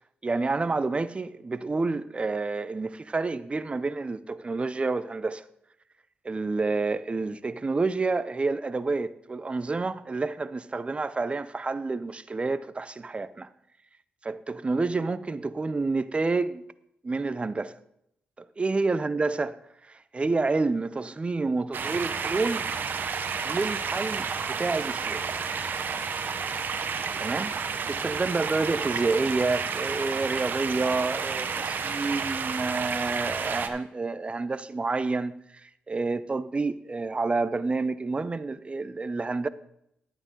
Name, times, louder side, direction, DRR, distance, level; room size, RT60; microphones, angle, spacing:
voice 1, 0.2-5.4 6.2-13.5 14.2-16.6 17.0-17.7 18.4-19.6 19.9-22.6 23.4-25.3 27.2-39.5, right 3 dB, 30° right, 0.6 m, -29 dB
sound 1, 21.7-33.7, right 5 dB, 60° right, 1.1 m, -31 dB
11.0 x 8.9 x 3.8 m
supercardioid pair, 55°, 4 cm